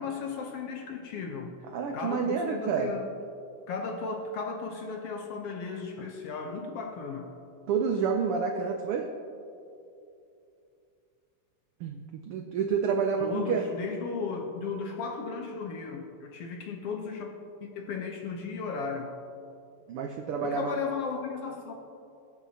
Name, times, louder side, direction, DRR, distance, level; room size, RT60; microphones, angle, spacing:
voice 1, 0.0-1.5 1.9-3.1 3.7-7.3 13.2-17.3 17.6-19.1 20.4-21.7, left 5 dB, 70° left, 2 dB, 1.5 m, -35 dB
voice 2, 1.7-2.9 7.7-9.1 11.8-12.0 12.3-13.6 19.9-20.7, right 6 dB, 85° right, 3 dB, 1.2 m, -28 dB
22.0 x 7.8 x 2.8 m, 2.6 s
omnidirectional pair, 3.3 m